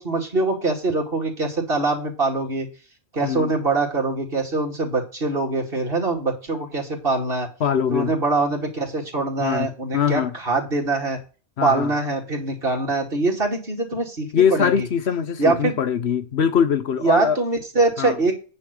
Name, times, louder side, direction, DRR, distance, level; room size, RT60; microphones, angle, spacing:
voice 1, 0.0-2.7 3.1-7.5 7.9-11.2 11.6-14.9 15.4-15.7 17.0-18.3, right 3 dB, 40° right, 2.7 m, -23 dB
voice 2, 7.6-8.1 9.4-10.3 11.6-11.9 14.3-17.4 18.0-18.2, left 7 dB, 50° left, 1.0 m, -22 dB
9.6 x 4.2 x 6.4 m
omnidirectional pair, 1.5 m